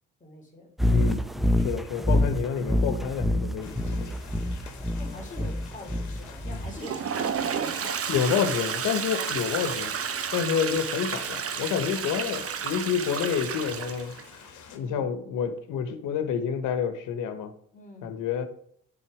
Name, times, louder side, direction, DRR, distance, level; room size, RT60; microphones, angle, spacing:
voice 1, 0.2-0.7 4.9-8.5 8.9-9.3 14.7-15.1 17.7-18.2, left 1 dB, 25° left, 2.6 m, -45 dB
sound 1, 0.8-6.8, left 1 dB, ahead, 0.6 m, -26 dB
voice 2, 0.9-1.2 1.6-4.2 8.1-9.9 10.3-14.1 14.7-17.5 18.0-18.5, left 7 dB, 90° left, 1.1 m, -28 dB
sound 2, 3.6-14.8, left 6 dB, 70° left, 1.4 m, -47 dB
Toilet flush, 6.6-14.3, right 7 dB, 50° right, 0.9 m, -31 dB
10.0 x 3.9 x 4.9 m
cardioid pair, 90°, 30 cm